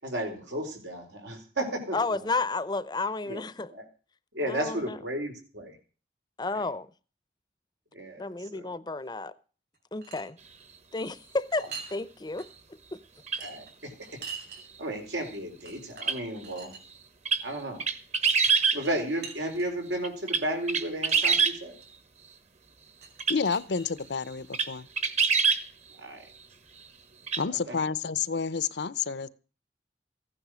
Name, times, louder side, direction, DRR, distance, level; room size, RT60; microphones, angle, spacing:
voice 1, 0.0-2.2 3.3-3.4 3.7-3.8 4.3-5.8 6.5-6.6 7.9-8.7 13.4-13.9 14.8-16.7 17.4-17.8 18.7-21.7 26.0-26.3 27.7-27.8, right 1 dB, 90° right, 4.4 m, -33 dB
voice 2, 1.9-3.7 4.5-5.0 6.4-6.9 8.2-9.4 9.9-10.4 10.9-12.5 12.9-13.0, left 3 dB, 25° left, 0.6 m, -32 dB
sound 1, 9.7-10.3 11.4-12.0 12.4-12.5 13.3-14.6 15.3-15.4 15.7-16.8 18.2-19.9 20.7-21.9 23.0-24.7, right 5 dB, 65° right, 5.3 m, -44 dB
sound 2, 13.3-13.4 16.0-16.2 17.3-17.4 17.8-18.8 20.0-21.6 23.2-23.4 24.0-24.1 24.5-24.7 25.0-25.6 27.3-27.4, right 5 dB, 40° right, 1.2 m, -24 dB
voice 3, 23.3-24.9 27.4-29.3, left 5 dB, 75° left, 0.7 m, -30 dB
15.5 x 10.0 x 6.3 m
head